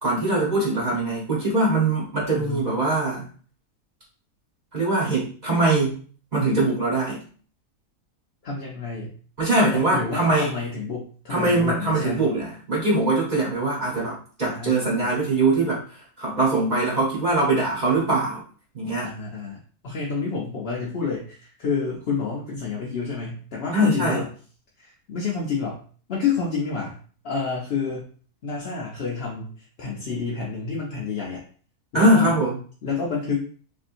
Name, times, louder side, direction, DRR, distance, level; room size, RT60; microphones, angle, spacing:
voice 1, 0.0-3.2 4.7-6.0 6.3-7.2 9.4-10.5 11.3-15.8 16.2-18.4 18.7-19.1 23.7-24.2 31.9-32.6, right 2 dB, 30° right, -6 dB, 1.0 m, -22 dB
voice 2, 2.4-2.7 8.4-9.1 9.7-12.3 14.4-15.1 19.0-24.3 24.8-25.8 26.1-27.0 27.2-28.1 28.4-31.4 31.9-32.4 32.8-33.5, left 5 dB, 60° left, -4 dB, 0.6 m, -29 dB
3.3 x 2.7 x 2.5 m, 0.43 s
omnidirectional pair, 1.6 m